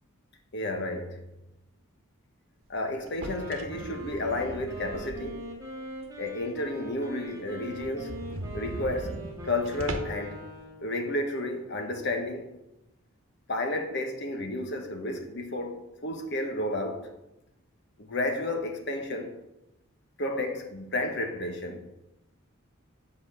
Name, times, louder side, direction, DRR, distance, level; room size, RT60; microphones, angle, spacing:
voice 1, 0.5-1.2 2.7-5.4 6.1-8.2 8.5-9.2 9.4-10.4 10.8-12.5 13.5-17.1 18.0-19.4 20.2-21.8, left 1 dB, 55° left, 1.3 m, -32 dB
Wind instrument woodwind instrument, 3.1-11.0, right 1 dB, 15° right, 2.5 m, -42 dB
sound 1, 3.1-5.6 6.0-6.1 6.6-6.7 6.9-7.0 7.3-7.4 7.7-10.3, right 1 dB, 70° right, 1.1 m, -39 dB
8.1 x 5.5 x 6.6 m
head